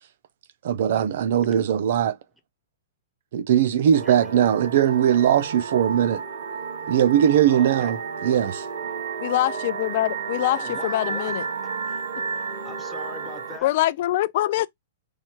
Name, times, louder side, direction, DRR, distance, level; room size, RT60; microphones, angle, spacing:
voice 1, 0.6-2.2 3.3-6.2 6.9-8.7, right 10 dB, 60° right, 0.6 m, -20 dB
sound 1, 3.9-13.6, right 5 dB, 80° right, 1.4 m, -32 dB
voice 2, 4.0-4.3 7.5-7.9 10.4-11.4 11.8-12.0 12.3-13.7, left 2 dB, 5° left, 0.8 m, -41 dB
voice 3, 9.2-11.4 13.6-14.7, left 15 dB, 50° left, 0.4 m, -24 dB
4.6 x 2.2 x 4.4 m
hypercardioid pair, 145°, 0 cm